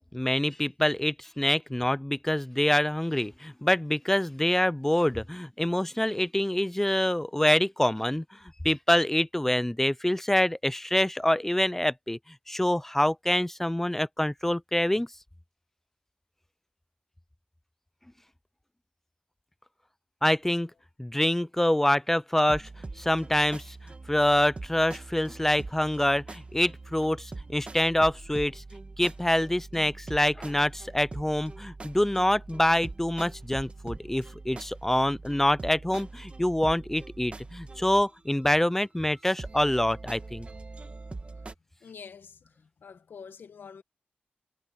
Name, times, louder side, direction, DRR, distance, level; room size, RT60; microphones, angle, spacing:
voice 1, 0.1-8.4 8.6-12.2 12.5-15.1 20.2-20.7 21.0-22.7 23.0-23.8 24.1-28.6 29.0-40.5, left 1 dB, 10° left, 0.5 m, -26 dB
sound 1, 22.5-38.2 39.1-41.5, right 3 dB, 35° right, 1.9 m, -43 dB
voice 2, 41.8-42.4 42.8-43.8, left 6 dB, 70° left, 1.5 m, -46 dB
wide cardioid pair, 90°, 4 cm